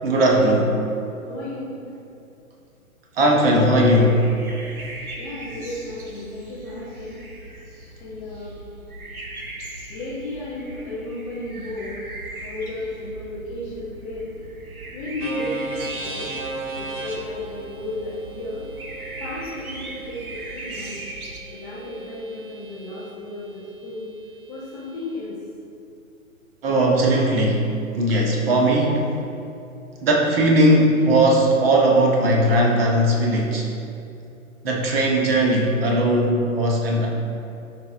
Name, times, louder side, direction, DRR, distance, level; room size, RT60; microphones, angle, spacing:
voice 1, 0.0-0.8 3.1-4.3 26.6-29.2 30.0-33.7 34.6-37.1, right 1 dB, 45° right, 0 dB, 1.4 m, -18 dB
voice 2, 1.2-1.7 5.2-7.2 8.0-8.5 9.9-12.0 12.4-14.3 14.9-16.4 16.8-18.7 19.2-21.0 21.5-24.1 24.5-25.4 26.7-26.8, left 2 dB, 10° left, -10 dB, 0.5 m, -34 dB
sound 1, 3.4-21.4, right 1 dB, 85° right, 1.2 m, -39 dB
sound 2, 15.2-23.1, right 3 dB, 60° right, 1.6 m, -36 dB
12.5 x 4.7 x 2.6 m, 2.6 s
figure-of-eight pair, 130°, 42 cm